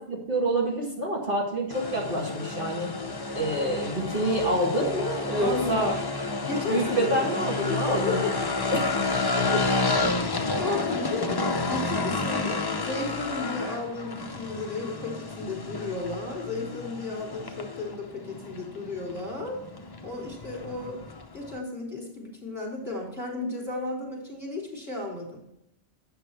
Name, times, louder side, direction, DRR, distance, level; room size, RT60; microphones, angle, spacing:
voice 1, 0.1-2.9 3.3-5.9 6.7-8.2 8.7-8.9, right 1 dB, 50° right, -3 dB, 2.0 m, -27 dB
sound 1, 1.7-21.6, left 3 dB, 30° left, 0.4 m, -30 dB
voice 2, 5.4-5.8 6.4-8.3 8.6-8.7 9.5-9.6 10.6-19.6 20.0-21.0 21.3-25.4, left 3 dB, ahead, -4 dB, 3.5 m, -33 dB
8.5 x 6.1 x 4.5 m, 0.80 s
omnidirectional pair, 1.2 m